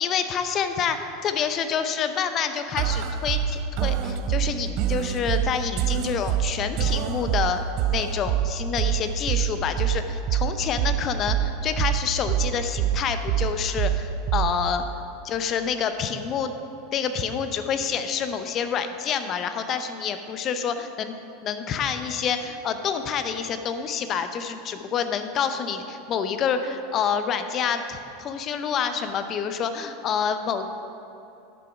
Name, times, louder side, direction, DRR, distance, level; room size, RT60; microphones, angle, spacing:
voice 1, 0.0-7.6 7.9-14.8 15.2-16.5 16.9-30.7, left 7 dB, 40° left, 9 dB, 0.7 m, -27 dB
sound 1, 2.8-14.8, right 9 dB, 50° right, 0.6 m, -26 dB
10.5 x 6.7 x 5.1 m, 2.8 s
hypercardioid pair, 85°, 0 cm